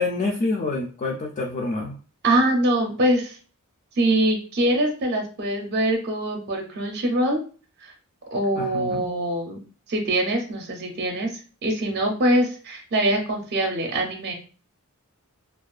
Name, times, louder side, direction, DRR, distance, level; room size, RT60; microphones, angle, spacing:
voice 1, 0.0-2.0 8.5-9.1, left 3 dB, 35° left, -1 dB, 0.3 m, -27 dB
voice 2, 2.2-3.4 4.0-7.4 7.8-7.9 8.3-9.6 9.9-11.3 11.6-14.3, right 1 dB, 50° right, 2 dB, 0.5 m, -23 dB
2.3 x 2.2 x 2.3 m, 0.38 s
head